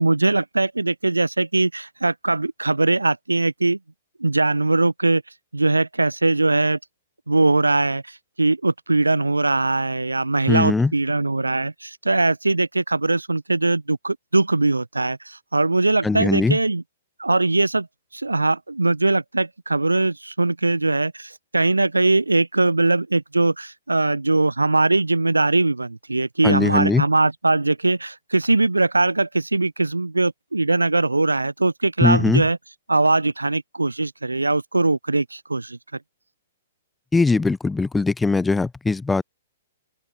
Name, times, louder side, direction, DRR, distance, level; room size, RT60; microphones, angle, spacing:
voice 1, 0.0-3.8 4.2-5.2 5.5-6.8 7.3-16.8 17.2-17.9 18.1-32.6 32.9-35.8, right 2 dB, 80° right, 3.3 m, -21 dB
voice 2, 10.5-10.9 16.0-16.6 26.4-27.0 32.0-32.4 37.1-39.2, left 3 dB, 5° left, 3.9 m, -20 dB
open air
figure-of-eight pair, 115°, 0 cm